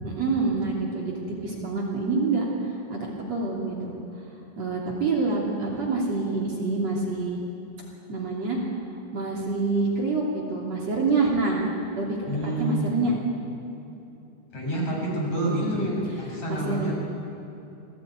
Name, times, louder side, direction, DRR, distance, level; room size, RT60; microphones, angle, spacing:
voice 1, 0.0-4.0 4.6-7.4 8.1-8.6 9.1-11.7 12.0-12.2 12.6-13.1 14.9-15.1 15.5-16.0 16.3-16.9, right 3 dB, 45° right, -2 dB, 3.8 m, -27 dB
voice 2, 12.3-13.2 14.5-15.9 16.2-16.9, right 1 dB, 45° left, -2 dB, 6.9 m, -28 dB
27.5 x 18.0 x 9.4 m, 3.0 s
omnidirectional pair, 4.5 m